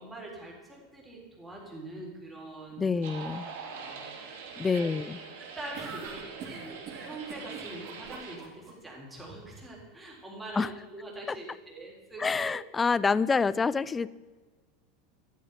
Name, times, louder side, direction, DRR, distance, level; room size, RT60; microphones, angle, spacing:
voice 1, 0.0-2.9 3.7-4.9 5.4-10.7 10.9-12.5, right 2 dB, 5° right, -3 dB, 3.7 m, -44 dB
voice 2, 2.8-3.5 4.6-5.2 10.6-10.7 11.3-11.4 12.2-14.1, left 4 dB, 10° left, 19 dB, 0.4 m, -27 dB
sound 1, 3.0-8.4, right 5 dB, 75° right, 3.7 m, -43 dB
sound 2, 5.7-8.7, right 5 dB, 30° right, 4.1 m, -43 dB
14.0 x 12.0 x 5.9 m, 1.4 s
supercardioid pair, 170°, 0 cm